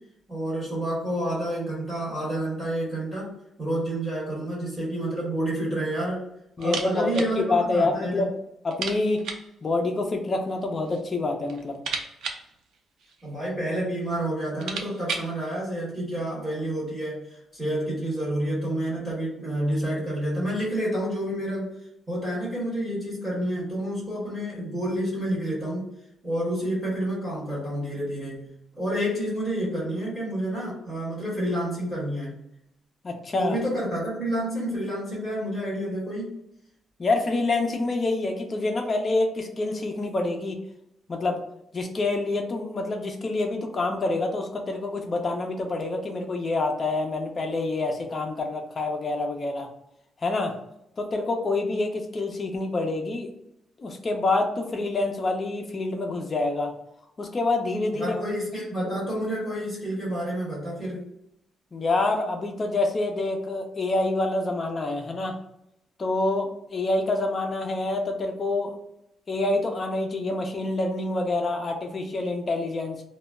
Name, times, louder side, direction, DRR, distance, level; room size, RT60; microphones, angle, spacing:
voice 1, 0.3-3.3 3.6-6.2 6.6-8.3 13.2-21.7 22.1-25.9 26.2-32.4 33.4-36.3 57.9-61.1, right 1 dB, 5° right, -8 dB, 1.0 m, -29 dB
voice 2, 6.6-8.3 8.6-9.2 9.6-11.8 33.0-33.6 37.0-40.6 41.1-41.4 41.7-49.7 50.2-50.5 51.0-53.3 53.8-56.7 57.2-58.2 61.7-65.4 66.0-68.7 69.3-73.0, left 2 dB, 25° left, 3 dB, 0.4 m, -27 dB
sound 1, 6.6-7.4 7.6-7.7 8.1-8.2 8.7-9.5 10.5-11.1 11.4-13.4 14.1-14.2 14.4-15.4, right 5 dB, 70° right, 0.4 m, -35 dB
2.1 x 2.0 x 3.4 m, 0.79 s
cardioid pair, 175°, 0 cm